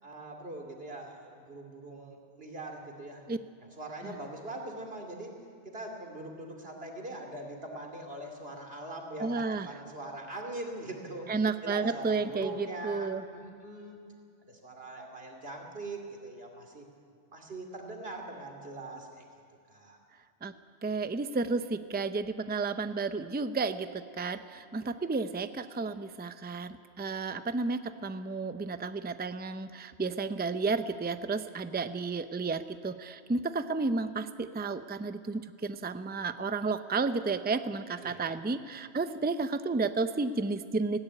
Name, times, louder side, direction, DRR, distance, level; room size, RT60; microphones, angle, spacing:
voice 1, 0.0-3.2 3.6-14.0 14.4-16.9 17.3-19.2 19.7-20.0 38.0-38.4, right 2 dB, 60° right, 1 dB, 2.9 m, -42 dB
voice 2, 9.2-9.7 11.3-13.2 20.4-20.5 20.8-41.0, right 4 dB, 15° right, 10 dB, 0.4 m, -32 dB
17.0 x 16.0 x 9.9 m, 2.2 s
omnidirectional pair, 1.2 m